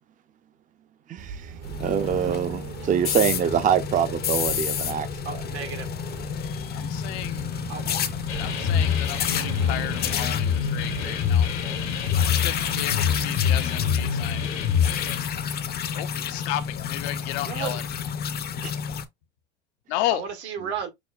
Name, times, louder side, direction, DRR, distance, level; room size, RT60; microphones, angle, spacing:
sound 1, 1.2-12.7, right 7 dB, 50° right, 0.8 m, -39 dB
sound 2, 1.6-19.0, left 8 dB, 30° left, 0.5 m, -30 dB
voice 1, 1.8-5.1 18.6-18.7, right 8 dB, 25° right, 0.5 m, -24 dB
voice 2, 5.2-6.0 7.7-8.0 17.4-17.8 20.1-20.9, right 7 dB, 80° right, 1.5 m, -33 dB
voice 3, 6.4-7.6 8.3-11.5 12.3-14.5 15.9-17.8 19.9-20.2, left 14 dB, 70° left, 0.7 m, -33 dB
sound 3, 8.3-15.2, left 8 dB, 90° left, 1.4 m, -25 dB
6.1 x 2.1 x 2.4 m
supercardioid pair, 95°, 33 cm